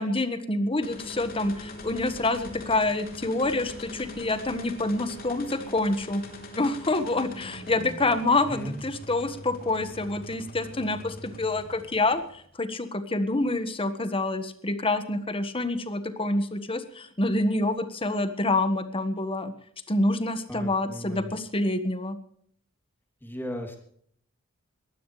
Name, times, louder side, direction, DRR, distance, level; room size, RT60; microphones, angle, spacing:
voice 1, 0.0-6.2 6.5-19.5 19.9-22.2, left 2 dB, 25° left, 10 dB, 1.5 m, -27 dB
sound 1, 0.8-12.5, left 1 dB, 45° left, 3.6 m, -42 dB
voice 2, 8.5-8.8 20.5-21.3 23.2-23.8, equal, 10° left, 3 dB, 3.1 m, -36 dB
21.5 x 15.5 x 3.3 m, 0.63 s
head